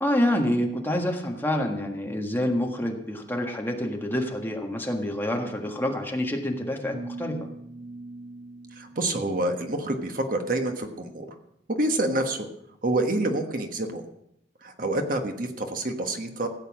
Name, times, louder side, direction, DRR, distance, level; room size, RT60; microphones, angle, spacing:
voice 1, 0.0-7.3, left 1 dB, 10° left, 1 dB, 1.6 m, -27 dB
sound 1, 6.9-10.0, right 2 dB, 85° right, 5.0 m, -42 dB
voice 2, 8.7-11.3 11.7-12.5 12.8-14.0 14.6-16.5, right 2 dB, 50° right, 5 dB, 1.4 m, -27 dB
15.5 x 8.1 x 6.3 m, 0.76 s
head